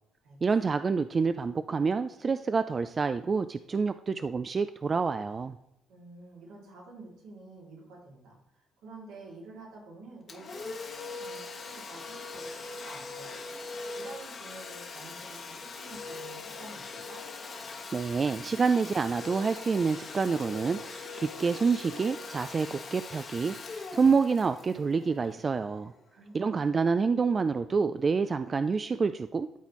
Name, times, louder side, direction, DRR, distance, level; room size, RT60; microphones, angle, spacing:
voice 1, 0.4-5.6 17.9-25.9 26.3-29.5, right 5 dB, 40° right, 11 dB, 0.3 m, -27 dB
voice 2, 5.9-13.4 13.9-17.2 26.1-26.9, right 2 dB, 80° right, -3 dB, 2.6 m, -49 dB
Domestic sounds home sounds, 10.3-25.8, left 3 dB, 50° left, 1.3 m, -41 dB
12.0 x 4.1 x 3.1 m, 0.87 s
supercardioid pair, 65°, 0 cm